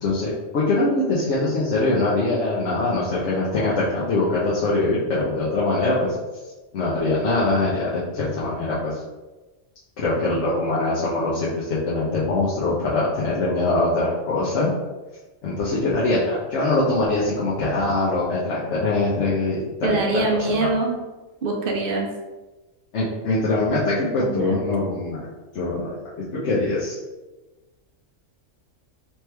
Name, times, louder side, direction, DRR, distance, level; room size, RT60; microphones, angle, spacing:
voice 1, 0.0-6.1 6.7-9.0 10.0-14.7 15.4-20.7 22.9-25.3 25.5-26.0 26.3-27.0, left 2 dB, 65° left, -7 dB, 1.0 m, -23 dB
voice 2, 19.8-21.0 21.4-22.1 24.2-24.4, right 2 dB, 55° right, 1 dB, 0.7 m, -23 dB
3.3 x 3.0 x 3.3 m, 1.2 s
omnidirectional pair, 1.4 m